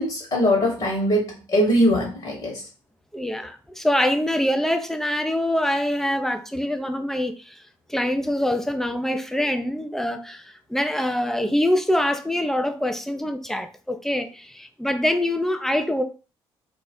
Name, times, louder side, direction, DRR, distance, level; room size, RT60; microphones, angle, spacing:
voice 1, 0.0-2.7, equal, 35° left, 1.2 m, -21 dB
voice 2, 3.1-7.5 7.9-16.0, left 1 dB, 5° left, 0.5 m, -24 dB
2.5 x 2.0 x 3.6 m
hypercardioid pair, 45°, 13 cm